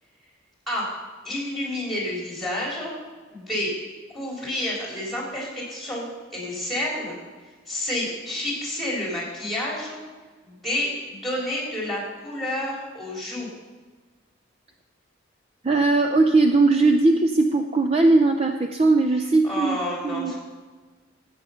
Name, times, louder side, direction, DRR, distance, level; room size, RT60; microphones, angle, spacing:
voice 1, 1.2-2.9 3.3-3.7 4.1-6.1 6.3-7.1 7.7-10.0 10.4-13.5 19.4-20.4, left 1 dB, ahead, -4 dB, 3.6 m, -29 dB
voice 2, 15.6-20.4, right 3 dB, 30° right, 6 dB, 0.5 m, -19 dB
13.0 x 7.9 x 5.7 m, 1.4 s
head